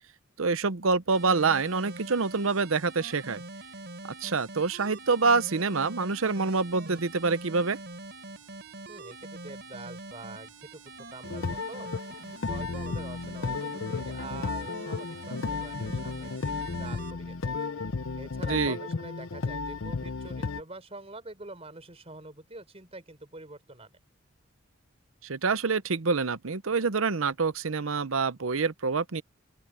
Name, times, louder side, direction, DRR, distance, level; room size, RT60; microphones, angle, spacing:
voice 1, 0.4-3.4 4.2-7.8 18.5-18.8 25.2-29.2, right 4 dB, 75° right, 0.9 m, -26 dB
sound 1, 1.1-17.1, right 2 dB, 55° right, 4.2 m, -44 dB
voice 2, 8.9-11.9 12.5-17.5 18.2-23.9, right 2 dB, 30° right, 4.3 m, -45 dB
sound 2, 11.2-20.6, left 4 dB, 65° left, 0.6 m, -34 dB
open air
head